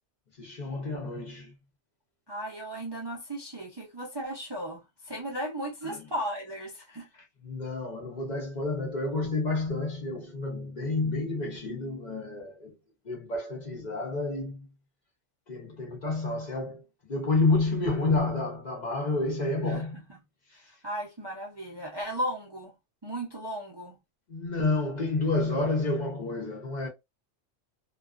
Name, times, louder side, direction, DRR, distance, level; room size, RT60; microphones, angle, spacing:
voice 1, 0.4-1.5 5.8-6.0 7.4-12.7 13.0-14.7 15.5-16.8 17.1-20.0 20.5-20.7 24.3-26.9, left 3 dB, 45° left, 0.7 m, -29 dB
voice 2, 2.3-7.1 19.6-20.2 20.5-22.7 23.0-24.0, right 1 dB, 35° right, 0.4 m, -36 dB
2.4 x 2.2 x 2.3 m
omnidirectional pair, 1.2 m